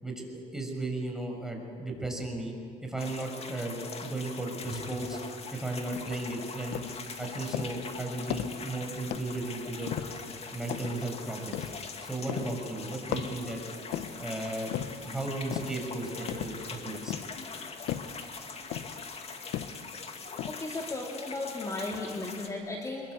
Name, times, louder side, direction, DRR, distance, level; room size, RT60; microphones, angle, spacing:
voice 1, 0.0-2.5 2.8-5.2 5.5-6.8 7.2-9.9 10.5-11.7 12.0-13.6 14.2-14.8 15.0-17.1, right 2 dB, 5° right, 1 dB, 6.2 m, -35 dB
sound 1, 3.0-22.5, left 4 dB, 35° left, 2.3 m, -42 dB
sound 2, 6.0-6.2 6.7-7.0 7.5-7.9 8.3-8.7 9.1-9.4 9.9-10.3 10.7-11.1 11.5-11.9 12.3-12.7 13.1-14.3 14.7-15.1 15.5-15.8 16.3-16.7 17.1-17.5 17.9-18.2 18.7-19.0 19.5-19.9 20.4-20.5, left 11 dB, 85° left, 1.1 m, -36 dB
voice 2, 20.4-23.1, left 2 dB, 20° left, -1 dB, 2.7 m, -35 dB
25.5 x 22.0 x 8.3 m, 2.3 s
cardioid pair, 110°, 17 cm